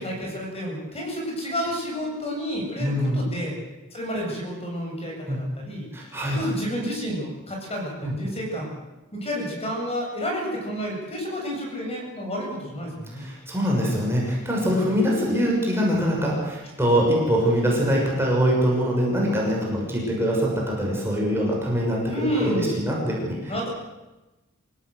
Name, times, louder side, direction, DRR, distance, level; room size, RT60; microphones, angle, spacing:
voice 1, 0.0-3.5 3.9-5.9 6.3-8.7 9.1-13.2 14.6-14.8 22.1-22.7 23.5-23.7, equal, 30° left, 0 dB, 8.0 m, -30 dB
voice 2, 2.8-3.2 5.3-5.4 5.9-6.4 8.0-8.1 13.1-23.7, equal, 10° right, -3 dB, 6.4 m, -23 dB
27.0 x 16.5 x 8.2 m, 1.1 s
head